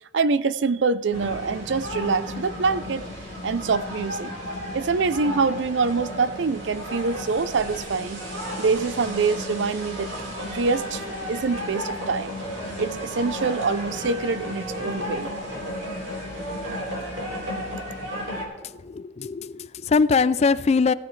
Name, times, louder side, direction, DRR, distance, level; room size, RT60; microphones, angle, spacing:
voice 1, 0.1-3.0 3.4-4.4 4.7-8.2 8.6-12.4 12.8-15.3, right 4 dB, 65° right, 0.5 m, -25 dB
sound 1, 1.1-18.4, equal, 85° right, 4.2 m, -33 dB
voice 2, 18.6-20.9, left 4 dB, 35° left, 0.3 m, -22 dB
16.5 x 14.5 x 3.2 m
head